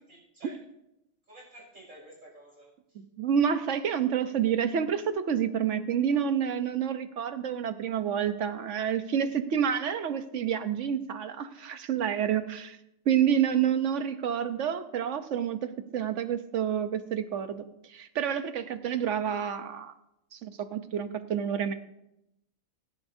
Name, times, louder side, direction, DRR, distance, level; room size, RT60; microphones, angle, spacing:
voice 1, 0.1-0.6 1.3-3.0, right 1 dB, 80° right, -2 dB, 6.5 m, -51 dB
voice 2, 3.2-12.8 13.1-17.6 17.9-19.9 20.3-21.7, right 8 dB, 65° right, 10 dB, 1.1 m, -28 dB
25.0 x 10.5 x 2.7 m, 0.85 s
omnidirectional pair, 1.4 m